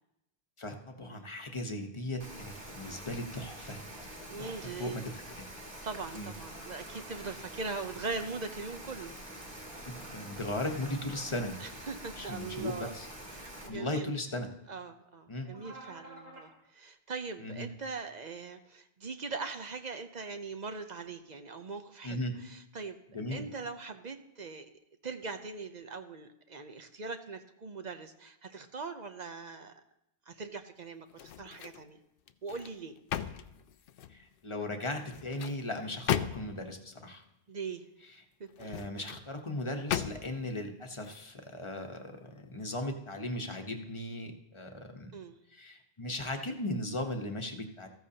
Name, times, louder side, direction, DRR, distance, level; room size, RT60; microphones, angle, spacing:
voice 1, 0.6-4.1 4.4-5.0 6.1-6.3 9.8-11.6 12.2-13.1 13.7-14.5 15.3-15.5 17.4-17.7 22.0-22.3 23.1-23.5 34.1-37.2 38.6-45.1 45.5-47.9, left 1 dB, 30° left, 4 dB, 1.0 m, -37 dB
Rain, 2.2-13.7, right 1 dB, 25° right, 1.9 m, -46 dB
voice 2, 4.3-5.0 5.6-9.1 11.6-12.9 13.3-14.1 14.7-23.0 23.3-24.7 25.0-29.7 30.3-32.0 32.4-33.0 37.5-37.8 38.4-38.5 45.1-45.4, right 4 dB, 50° right, 8 dB, 0.8 m, -41 dB
sound 1, 6.4-7.9 9.6-11.3 15.4-16.5, right 1 dB, 80° right, 2.9 m, -52 dB
sound 2, 31.1-31.9 32.3-34.2 35.0-36.7 38.5-39.2 39.9-40.5 41.0-41.2, left 9 dB, 70° left, 0.7 m, -36 dB
14.5 x 14.0 x 2.8 m, 0.84 s
omnidirectional pair, 1.0 m